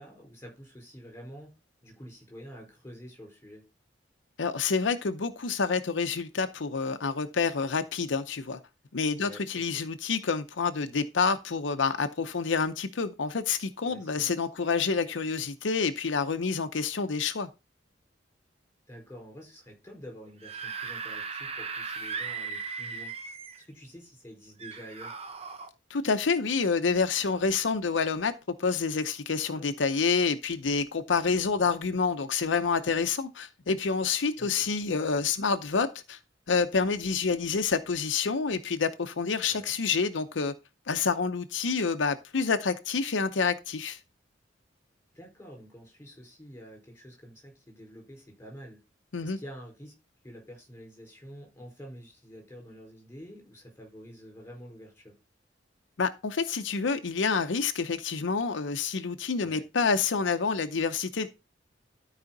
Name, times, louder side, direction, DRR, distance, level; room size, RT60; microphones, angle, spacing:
voice 1, 0.0-1.5 1.8-3.6 9.2-9.4 9.7-9.8 13.8-14.5 18.9-23.1 23.6-25.3 29.5-29.7 31.4-31.7 34.4-34.7 39.5-39.8 45.1-48.8 49.2-49.9 50.2-55.1 59.3-59.6, equal, 15° left, 4.5 m, -48 dB
voice 2, 4.4-8.6 8.9-17.5 25.9-28.3 28.6-36.2 36.5-40.5 40.9-44.0 49.1-49.4 56.0-61.3, left 5 dB, 80° left, 0.7 m, -28 dB
Screaming / Screech, 20.3-23.6 24.6-25.7, right 5 dB, 35° right, 1.0 m, -37 dB
12.5 x 4.9 x 3.9 m
head